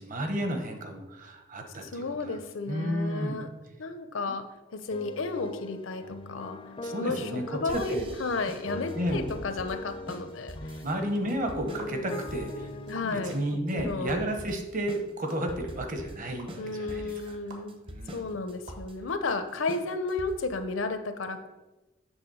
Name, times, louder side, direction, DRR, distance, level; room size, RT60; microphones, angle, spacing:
voice 1, 0.0-2.4 2.6-3.4 6.8-8.1 8.9-9.2 10.8-17.4 17.8-18.2, right 1 dB, 45° right, 4 dB, 1.1 m, -32 dB
voice 2, 1.8-3.5 3.8-4.4 4.7-6.6 7.0-10.8 12.9-13.4 13.7-14.3 16.6-17.8 18.1-21.5, left 3 dB, 85° left, 9 dB, 0.7 m, -33 dB
sound 1, 4.9-13.5, left 2 dB, 25° left, 0.4 m, -41 dB
sound 2, 7.7-20.6, equal, 30° right, 0.7 m, -44 dB
sound 3, 11.8-11.9 12.9-13.0 14.1-14.2 15.2-15.3 16.4-16.5 17.5-17.6 18.7-18.8, right 3 dB, 60° right, 1.3 m, -45 dB
8.0 x 3.5 x 6.3 m, 1.1 s
head